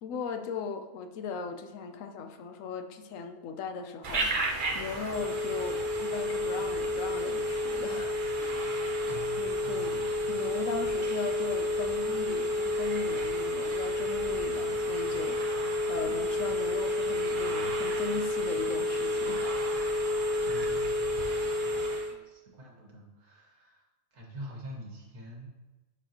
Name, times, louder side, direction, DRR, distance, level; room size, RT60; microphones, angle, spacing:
voice 1, 0.0-8.7 9.4-20.1, left 5 dB, 65° left, 7 dB, 1.0 m, -39 dB
Telephone, 4.0-22.1, left 1 dB, 45° right, 0.8 m, -30 dB
voice 2, 9.1-10.0 20.4-25.5, equal, 75° right, -2 dB, 2.1 m, -46 dB
11.5 x 4.8 x 2.9 m, 1.2 s
omnidirectional pair, 1.6 m